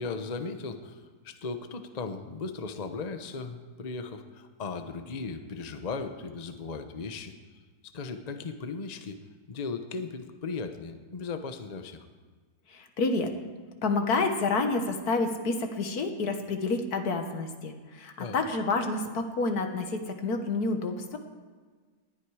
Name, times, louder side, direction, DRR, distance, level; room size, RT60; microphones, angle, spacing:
voice 1, 0.0-7.3 7.9-9.2 9.5-12.1 18.2-18.4, left 4 dB, 30° left, 7 dB, 0.8 m, -37 dB
voice 2, 12.7-13.3 13.8-21.2, left 3 dB, 75° left, 6 dB, 1.8 m, -29 dB
19.5 x 12.0 x 4.9 m, 1.4 s
omnidirectional pair, 1.7 m